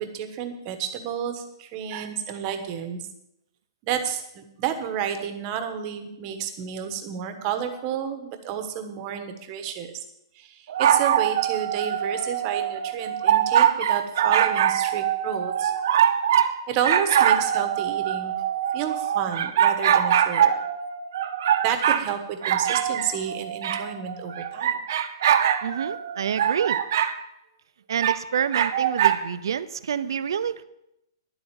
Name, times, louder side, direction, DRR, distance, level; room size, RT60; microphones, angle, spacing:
voice 1, 0.0-3.0 3.8-10.0 10.4-15.7 16.7-18.3 18.7-20.6 21.6-24.8, right 8 dB, 25° right, 7 dB, 1.3 m, -30 dB
sound 1, 10.7-16.5 16.8-22.1 22.4-27.1 28.0-29.2, right 9 dB, 50° right, 1.0 m, -23 dB
voice 2, 25.6-26.8 27.9-30.6, right 8 dB, 70° right, 14 dB, 0.8 m, -28 dB
11.5 x 7.9 x 8.9 m, 0.82 s
hypercardioid pair, 175°, 2 cm